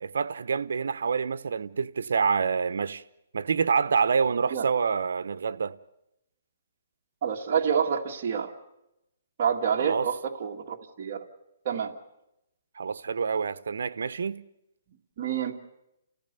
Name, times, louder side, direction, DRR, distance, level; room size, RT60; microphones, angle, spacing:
voice 1, 0.0-3.0 3.3-5.8 9.8-10.1 12.8-14.4, right 6 dB, 80° right, 0.9 m, -27 dB
voice 2, 7.2-8.5 9.4-11.3 11.7-11.9 15.2-15.5, right 7 dB, 40° right, 1.9 m, -28 dB
30.0 x 16.0 x 6.9 m
hypercardioid pair, 165°, 0 cm